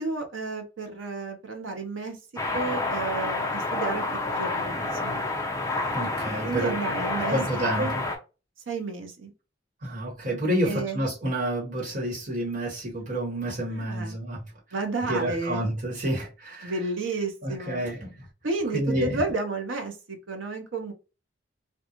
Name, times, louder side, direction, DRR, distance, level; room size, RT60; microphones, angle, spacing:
voice 1, 0.0-2.2 2.5-5.2 6.4-7.4 7.8-8.0 8.7-9.3 10.6-11.1 13.7-14.2 14.7-15.7 16.6-17.8 18.4-20.9, right 3 dB, 85° right, 0.7 m, -31 dB
sound 1, 2.4-8.2, left 2 dB, 15° left, 0.5 m, -29 dB
voice 2, 5.9-6.8 7.1-8.1 9.8-14.5 15.0-16.7 17.4-18.3 18.7-19.2, right 1 dB, 40° right, 1.3 m, -29 dB
2.5 x 2.3 x 2.9 m
head